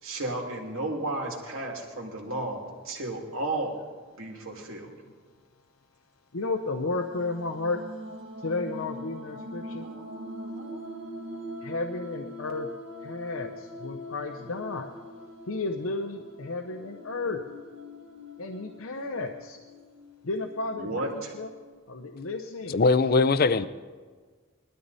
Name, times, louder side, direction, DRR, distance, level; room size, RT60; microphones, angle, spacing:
voice 1, 0.0-3.7 4.2-4.9 20.7-21.3, right 2 dB, 85° right, 0 dB, 2.7 m, -33 dB
voice 2, 6.3-7.8 8.4-9.9 11.6-12.7 13.0-14.9 15.5-17.4 18.4-19.6 20.2-21.5 21.9-22.8 23.6-23.7, left 3 dB, 90° left, 4 dB, 0.8 m, -33 dB
sound 1, 6.9-21.7, equal, 60° right, 1.7 m, -42 dB
voice 3, 22.7-23.7, left 3 dB, 45° left, 15 dB, 0.5 m, -21 dB
20.5 x 13.0 x 4.1 m, 1.5 s
head